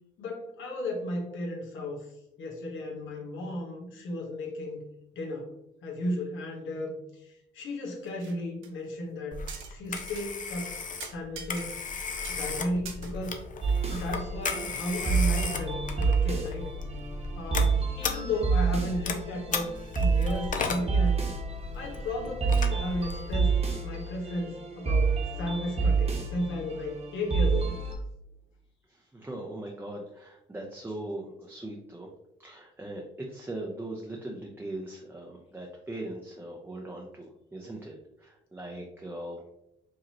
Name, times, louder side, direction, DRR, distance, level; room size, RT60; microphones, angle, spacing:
voice 1, 0.2-2.1 2.4-4.8 5.1-5.5 5.8-9.4 9.7-10.8 11.1-11.8 12.3-13.4 13.9-16.7 17.3-19.7 20.0-21.3 21.7-23.5 23.8-27.8, left 1 dB, 75° left, -1 dB, 1.3 m, -34 dB
sound 1, 8.0-8.4 8.6-8.7 9.5-10.3 10.6-10.7 11.0-12.0 12.2-12.5 12.8-13.6, right 6 dB, 80° right, 0.8 m, -44 dB
Telephone, 9.3-23.6, left 4 dB, 40° left, 0.7 m, -36 dB
sound 2, 13.6-27.9, right 4 dB, 30° right, 1.1 m, -28 dB
voice 2, 28.9-32.1 32.4-39.4, right 1 dB, 10° right, -1 dB, 0.7 m, -40 dB
5.1 x 2.9 x 2.9 m, 0.84 s
cardioid pair, 90°, 20 cm